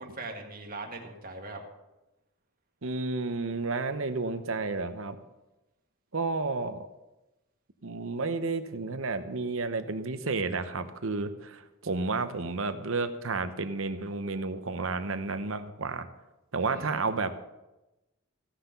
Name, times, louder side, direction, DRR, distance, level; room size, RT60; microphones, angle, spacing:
voice 1, 0.0-1.6 16.6-17.0, right 3 dB, 40° right, 2 dB, 1.8 m, -41 dB
voice 2, 2.8-5.2 6.1-6.9 7.8-16.1 16.5-17.3, right 3 dB, 65° right, 9 dB, 0.9 m, -31 dB
16.0 x 5.9 x 6.9 m, 1.0 s
head